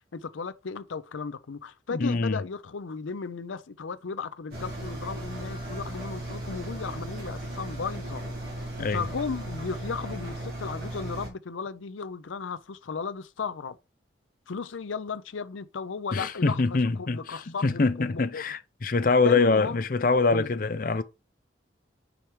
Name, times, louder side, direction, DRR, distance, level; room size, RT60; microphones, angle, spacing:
voice 1, 0.1-8.2 8.9-13.8 14.5-18.4 19.2-19.8 20.3-20.5, left 5 dB, 90° left, 0.6 m, -35 dB
voice 2, 1.9-2.4 8.8-9.0 16.1-21.0, left 3 dB, 45° left, 0.5 m, -24 dB
Engine, 4.5-11.3, right 1 dB, 55° right, 2.6 m, -36 dB
5.1 x 4.5 x 4.5 m
head